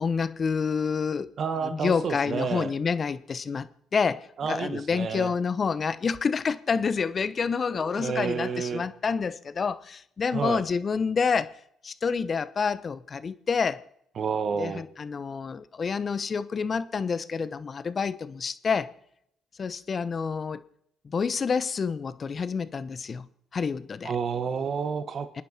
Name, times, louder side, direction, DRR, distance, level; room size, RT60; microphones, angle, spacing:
voice 1, 0.0-1.3 1.6-3.7 3.9-11.6 11.8-13.8 14.6-18.9 19.6-20.6 21.0-23.3 23.5-24.1 25.4-25.5, left 5 dB, 45° left, 0.9 m, -28 dB
voice 2, 1.4-2.7 4.4-5.3 7.7-8.8 10.3-10.6 14.2-14.8 24.0-25.3, right 6 dB, 55° right, 1.4 m, -30 dB
29.0 x 9.8 x 4.3 m
supercardioid pair, 70°, 0 cm